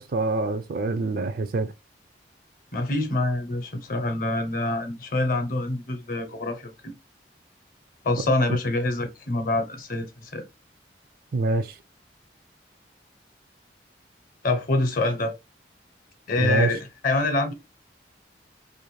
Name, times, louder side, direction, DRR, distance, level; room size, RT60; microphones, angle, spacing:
voice 1, 0.0-1.7 11.3-11.7 16.4-16.7, right 3 dB, 55° right, 0.4 m, -25 dB
voice 2, 2.7-6.9 8.0-10.5 14.4-15.3 16.3-17.5, left 2 dB, 50° left, 0.7 m, -26 dB
2.5 x 2.4 x 3.0 m
head